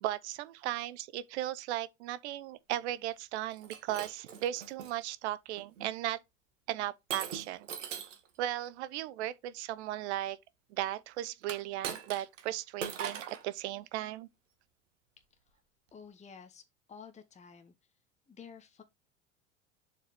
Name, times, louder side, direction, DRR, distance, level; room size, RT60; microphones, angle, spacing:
voice 1, 0.0-6.2 6.7-7.7 8.4-10.4 10.7-14.3, right 14 dB, 60° right, 0.8 m, -36 dB
Shatter, 3.5-4.9 5.6-5.9 7.1-8.3 11.4-12.5 12.8-13.4, right 7 dB, 75° right, 1.3 m, -40 dB
voice 2, 15.9-17.7 18.3-18.8, left 6 dB, 20° left, 1.1 m, -51 dB
7.0 x 5.1 x 3.5 m
figure-of-eight pair, 70°, 37 cm